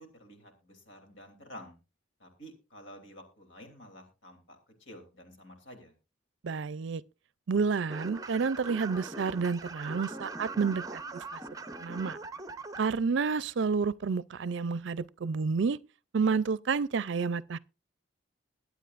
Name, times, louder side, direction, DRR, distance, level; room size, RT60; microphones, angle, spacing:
voice 1, 0.0-1.8 2.2-5.9, equal, 80° left, 3.1 m, -50 dB
voice 2, 6.4-7.0 7.5-11.0 11.8-12.2 12.8-15.8 16.1-17.6, right 5 dB, 70° right, 0.4 m, -29 dB
sound 1, 7.9-12.9, right 3 dB, 20° right, 0.6 m, -41 dB
21.5 x 8.2 x 2.5 m
head